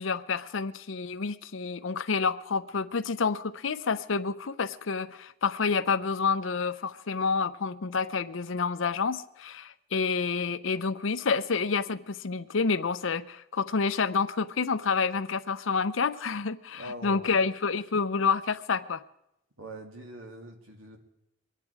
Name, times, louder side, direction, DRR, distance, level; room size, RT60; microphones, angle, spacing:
voice 1, 0.0-19.0, left 5 dB, 70° left, 0.7 m, -29 dB
voice 2, 16.7-17.4 19.6-21.0, right 1 dB, 90° right, 2.6 m, -42 dB
23.5 x 10.0 x 4.8 m
head